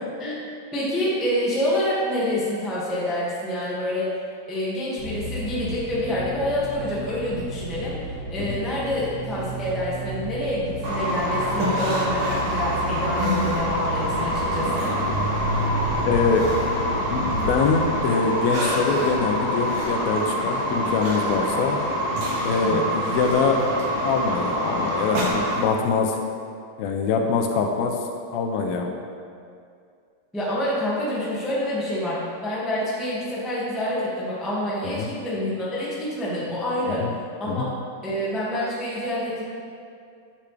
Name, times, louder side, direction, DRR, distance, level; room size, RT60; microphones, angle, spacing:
voice 1, 0.7-4.1 4.5-8.0 8.3-14.9 22.6-22.9 30.3-37.1 37.4-37.7 38.0-39.5, left 1 dB, ahead, -8 dB, 0.3 m, -27 dB
sound 1, 5.0-18.0, equal, 60° left, 1.0 m, -32 dB
sound 2, 10.8-25.6, equal, 80° right, 0.8 m, -26 dB
sound 3, 10.9-14.2 14.5-17.7 18.1-25.9, equal, 60° right, 1.5 m, -33 dB
voice 2, 16.1-16.5 16.7-16.9 17.1-21.8 22.4-23.6 24.0-26.2 26.8-28.0 28.3-28.9 34.8-35.1 36.9-37.1 37.5-37.7, left 5 dB, 80° left, 3 dB, 2.5 m, -24 dB
11.5 x 8.0 x 3.5 m, 2.3 s
omnidirectional pair, 4.5 m